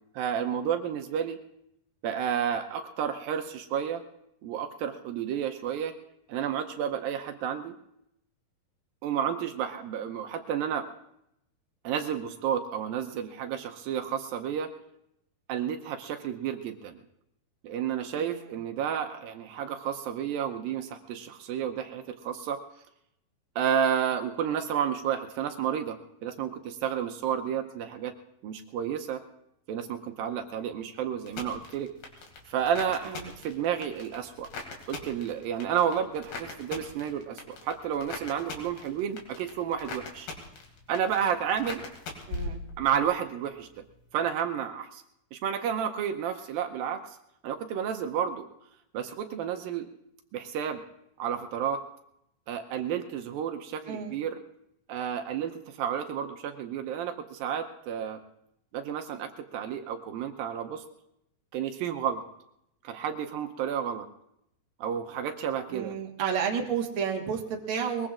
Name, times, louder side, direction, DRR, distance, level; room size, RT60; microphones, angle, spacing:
voice 1, 0.1-1.4 2.0-4.0 4.4-5.9 6.3-7.7 9.0-10.9 11.8-14.7 15.5-17.0 17.6-22.6 23.6-28.1 28.4-29.2 29.7-31.9 32.5-34.5 34.9-40.3 40.9-41.8 42.8-43.7 44.1-45.0 45.3-47.2 47.4-48.5 48.9-49.9 50.3-50.8 51.2-51.8 52.5-54.4 54.9-58.2 58.7-60.8 61.5-62.2 62.8-64.1 64.8-65.9, right 8 dB, 80° right, 6 dB, 2.4 m, -31 dB
voice 2, 18.1-18.5 33.0-33.3 42.3-42.6 53.9-54.2 65.7-68.1, right 7 dB, 50° right, 1 dB, 1.6 m, -31 dB
sound 1, 31.3-43.2 43.5-44.0, left 3 dB, 75° left, 4.1 m, -42 dB
22.0 x 21.5 x 2.5 m, 0.79 s
omnidirectional pair, 4.4 m